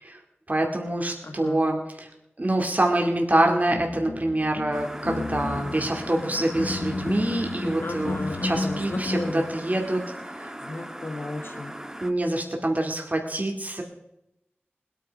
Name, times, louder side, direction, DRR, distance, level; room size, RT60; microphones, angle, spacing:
voice 1, 0.5-2.1 2.4-10.0 10.3-10.5 12.0-13.8, right 1 dB, 40° right, 2 dB, 2.3 m, -25 dB
voice 2, 1.2-1.7 7.8-9.5 10.6-11.7, left 2 dB, 65° left, 5 dB, 1.4 m, -34 dB
sound 1, 3.7-9.3, left 2 dB, 85° left, 1.0 m, -33 dB
sound 2, 4.7-12.1, right 1 dB, 15° right, 1.4 m, -39 dB
20.0 x 9.3 x 5.2 m, 0.86 s
wide cardioid pair, 40°, 4 cm